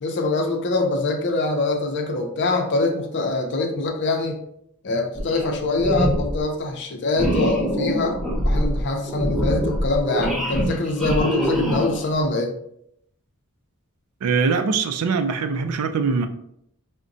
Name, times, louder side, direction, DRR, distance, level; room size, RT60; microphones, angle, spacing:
voice 1, 0.0-4.4 4.8-8.2 8.4-12.5, left 2 dB, 55° left, 0.6 m, -24 dB
sound 1, 5.1-5.5 5.8-6.4 7.1-12.1, equal, ahead, 0.6 m, -24 dB
voice 2, 14.2-16.3, right 5 dB, 80° right, 0.4 m, -22 dB
4.7 x 2.1 x 2.6 m
head